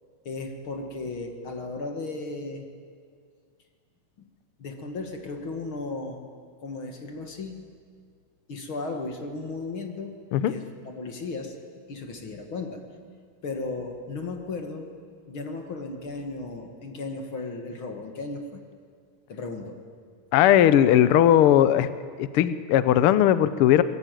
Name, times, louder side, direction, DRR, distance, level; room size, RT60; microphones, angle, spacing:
voice 1, 0.3-2.7 4.6-6.3 6.6-7.6 8.5-10.1 10.5-11.6 11.9-12.8 13.4-14.9 15.3-18.6 19.3-19.8, left 3 dB, 45° left, 4 dB, 2.3 m, -35 dB
voice 2, 20.3-21.9 22.2-23.8, left 11 dB, 80° left, 13 dB, 1.2 m, -18 dB
23.5 x 21.0 x 9.2 m, 2.1 s
omnidirectional pair, 3.6 m